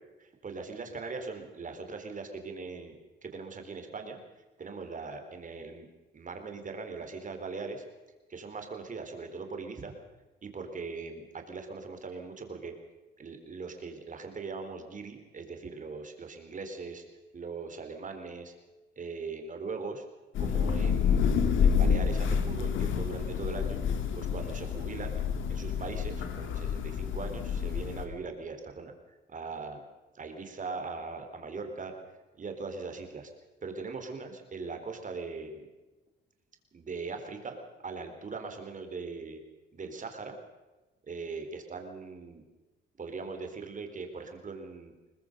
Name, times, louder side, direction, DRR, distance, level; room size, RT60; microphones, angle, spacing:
voice 1, 0.2-4.2 4.6-5.9 6.1-7.8 8.3-9.9 10.4-12.7 13.2-17.0 17.3-18.5 19.0-20.0 20.4-23.8 24.1-25.2 25.5-29.8 30.1-31.9 32.4-33.3 33.6-35.7 36.7-37.6 37.8-39.4 39.7-40.4 41.1-42.4 43.0-44.9, right 4 dB, 40° right, 5 dB, 4.1 m, -40 dB
Thunder / Rain, 20.3-28.0, left 7 dB, 80° left, 2.4 m, -28 dB
22.5 x 20.0 x 6.8 m, 1.2 s
cardioid pair, 90°, 20 cm